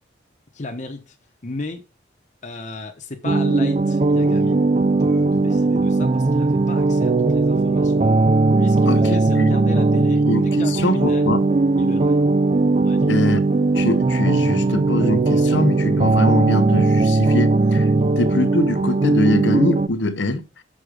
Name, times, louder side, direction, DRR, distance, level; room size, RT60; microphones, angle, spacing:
voice 1, 0.5-1.2 1.4-1.8 2.4-4.6 4.9-8.0 8.6-11.3 11.8-12.2 12.8-13.2 18.0-18.2, left 2 dB, 40° left, 0.9 m, -34 dB
sound 1, 3.2-19.9, right 3 dB, 35° right, 0.5 m, -18 dB
voice 2, 10.3-11.4 13.1-13.4 13.7-17.9 18.2-20.4, left 1 dB, 80° left, 0.9 m, -23 dB
6.4 x 6.3 x 5.1 m
head